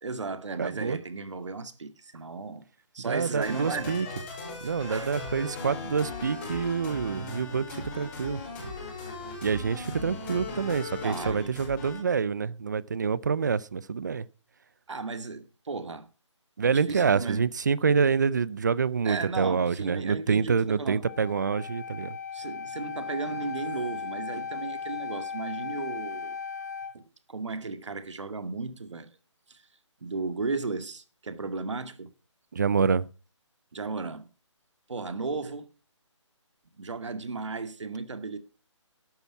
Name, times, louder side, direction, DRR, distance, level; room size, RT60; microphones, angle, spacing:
voice 1, 0.0-2.6 2.9-4.0 4.6-5.2 11.0-11.6 14.9-16.1 16.6-17.4 19.0-21.0 22.3-26.4 26.9-29.1 29.5-29.6 30.0-32.1 33.7-34.3 34.9-35.7 36.7-38.4, right 4 dB, 70° right, 2.1 m, -35 dB
voice 2, 0.6-1.0 3.1-4.1 4.6-8.4 9.4-14.3 16.6-22.2 32.5-33.1, right 5 dB, 35° right, 0.6 m, -27 dB
sound 1, 3.4-12.0, left 2 dB, 20° left, 5.6 m, -38 dB
Wind instrument woodwind instrument, 21.0-27.0, left 6 dB, 35° left, 0.7 m, -37 dB
12.5 x 8.9 x 5.9 m
hypercardioid pair, 170°, 16 cm